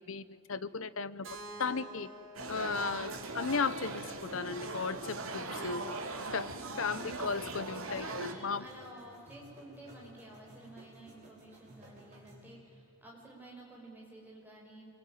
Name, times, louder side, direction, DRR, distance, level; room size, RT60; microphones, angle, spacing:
voice 1, 0.1-1.3 1.6-2.1 2.5-3.1 3.3-5.9 6.3-6.5 6.8-8.7, left 5 dB, 75° left, 16 dB, 0.9 m, -35 dB
Keyboard (musical), 1.2-5.1, right 2 dB, 65° right, 3.8 m, -51 dB
sound 1, 2.3-8.3, right 3 dB, 80° right, 2.6 m, -40 dB
sound 2, 2.7-12.6, equal, 35° right, 6.0 m, -56 dB
voice 2, 6.9-7.4 8.0-14.9, right 1 dB, 10° right, -2 dB, 5.9 m, -52 dB
27.0 x 23.0 x 9.3 m, 2.9 s
head